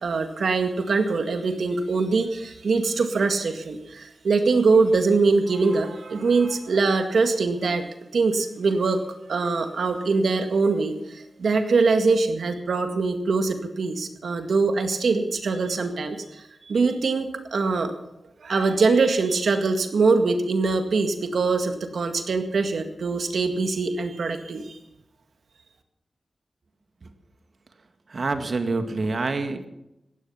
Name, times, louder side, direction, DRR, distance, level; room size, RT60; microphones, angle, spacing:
voice 1, 0.0-7.8 8.1-9.0 9.3-17.9 18.4-24.8, right 4 dB, 80° right, 6 dB, 1.9 m, -23 dB
voice 2, 28.1-29.7, right 3 dB, 65° right, 7 dB, 2.0 m, -27 dB
17.0 x 13.5 x 5.7 m, 0.88 s
cardioid pair, 45°, 0 cm